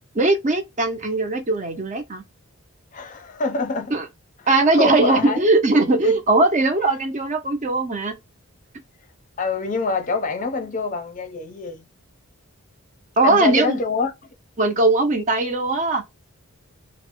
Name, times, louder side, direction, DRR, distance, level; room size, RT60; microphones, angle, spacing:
voice 1, 0.1-2.2 3.9-4.0 4.5-8.1 13.2-13.8 14.6-16.0, right 2 dB, 35° right, 0.6 m, -19 dB
voice 2, 2.9-3.9 4.7-5.5 6.0-6.2 9.4-11.9 13.2-14.1, left 4 dB, 35° left, 0.5 m, -25 dB
3.1 x 2.0 x 2.9 m
head